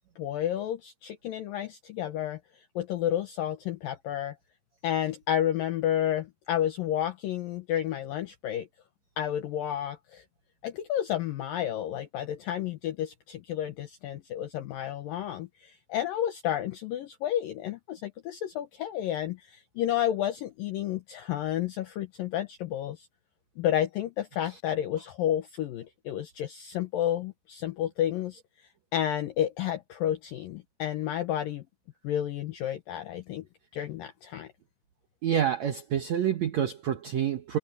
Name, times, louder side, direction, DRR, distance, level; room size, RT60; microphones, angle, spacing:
voice 1, 0.0-4.4 4.8-8.7 9.2-10.2 10.6-23.1 23.6-31.6 32.0-33.4 33.7-34.5, left 11 dB, 70° left, 2.3 m, -31 dB
voice 2, 35.2-37.6, right 9 dB, 80° right, 1.5 m, -27 dB
omnidirectional pair, 4.9 m